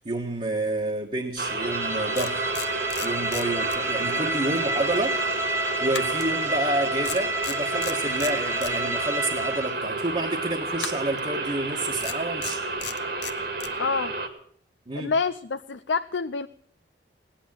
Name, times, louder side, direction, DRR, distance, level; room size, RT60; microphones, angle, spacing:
voice 1, 0.0-2.5 3.0-5.2 5.8-12.6 14.9-15.1, right 2 dB, 35° right, -1 dB, 1.4 m, -29 dB
sound 1, 1.4-14.3, right 3 dB, 60° right, 2.2 m, -31 dB
Bowed string instrument, 1.5-9.8, right 1 dB, 15° right, 1.1 m, -30 dB
sound 2, 1.6-1.8 2.1-4.2 4.5-4.7 5.9-6.8 7.0-8.8 10.8-11.3 12.0-13.8, left 10 dB, 70° left, 1.1 m, -36 dB
voice 2, 13.8-14.1 14.9-16.5, left 4 dB, 85° left, 10 dB, 0.6 m, -27 dB
18.5 x 10.5 x 7.5 m, 0.63 s
head